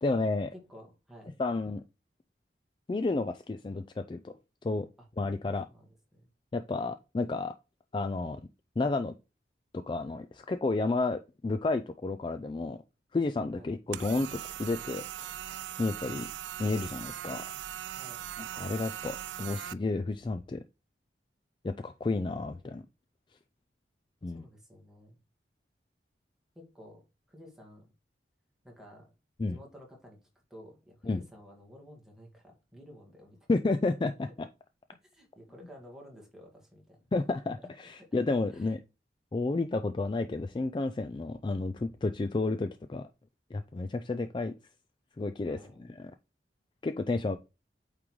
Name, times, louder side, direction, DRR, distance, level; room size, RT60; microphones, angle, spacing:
voice 1, 0.0-0.5 1.4-1.8 2.9-4.3 4.6-4.9 5.2-5.7 6.5-7.5 7.9-8.4 8.8-9.1 9.9-12.8 13.1-15.4 15.8-16.3 16.6-17.5 18.4-20.6 21.6-22.8 24.2-24.4 29.4-29.6 31.0-31.2 33.5-34.5 37.1-38.8 39.3-43.1 43.5-44.5 45.2-46.1 46.8-47.4, left 3 dB, 25° left, 0.3 m, -31 dB
voice 2, 0.7-1.4 5.7-6.3 13.5-13.7 17.9-18.3 24.3-25.2 26.5-27.9 28.6-29.1 29.4-33.4 35.0-37.0 38.0-38.1 38.5-38.7 45.4-45.9, equal, 5° right, 1.8 m, -53 dB
sound 1, 13.9-19.7, right 11 dB, 85° right, 0.3 m, -40 dB
8.5 x 3.7 x 3.1 m
head